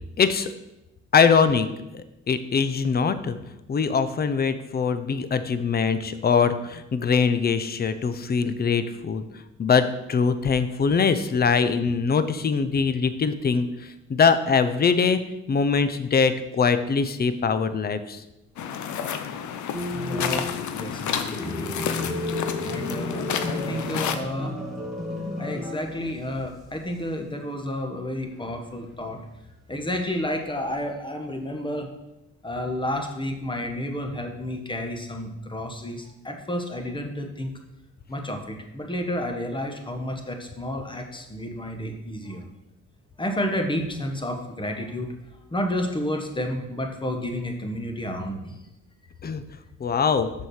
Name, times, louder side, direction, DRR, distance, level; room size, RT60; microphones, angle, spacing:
voice 1, 0.2-0.5 1.1-1.7 1.9-3.4 3.7-9.2 9.6-13.7 14.1-15.2 15.5-18.2 49.2-49.4 49.8-50.3, left 5 dB, 30° left, 11 dB, 0.6 m, -22 dB
sound 1, 18.6-24.2, left 8 dB, 70° left, 0.7 m, -30 dB
sound 2, 19.7-26.3 26.5-26.6 28.4-29.0 30.1-30.8, left 2 dB, ahead, 1.9 m, -32 dB
voice 2, 20.0-20.5 20.7-21.7 22.6-24.6 25.4-29.2 29.7-31.9 32.4-37.5 38.1-42.5 43.2-45.1 45.5-48.6, left 1 dB, 15° left, 4 dB, 1.4 m, -31 dB
6.2 x 4.6 x 6.5 m, 0.92 s
cardioid pair, 90°, 30 cm